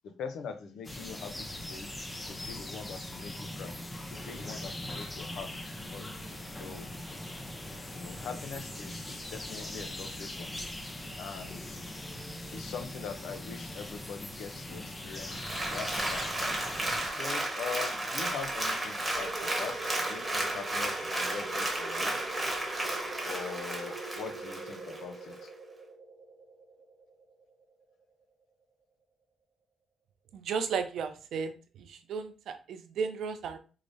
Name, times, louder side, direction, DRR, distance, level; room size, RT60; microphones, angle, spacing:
voice 1, 0.0-1.9 2.3-3.8 4.1-6.9 7.9-10.7 11.2-11.8 12.5-16.6 17.1-22.2 23.2-25.5, left 6 dB, 75° left, 7 dB, 0.5 m, -42 dB
sound 1, 0.8-17.1, left 1 dB, 15° left, 0.5 m, -41 dB
Applause, 15.3-25.0 25.5-25.6, right 1 dB, 15° right, 1.1 m, -33 dB
sound 2, 19.1-28.4, right 3 dB, 50° right, 0.9 m, -43 dB
voice 2, 30.3-31.5 31.8-33.6, right 6 dB, 70° right, 8 dB, 0.5 m, -34 dB
4.8 x 2.0 x 2.6 m, 0.37 s
cardioid pair, 90°, 0 cm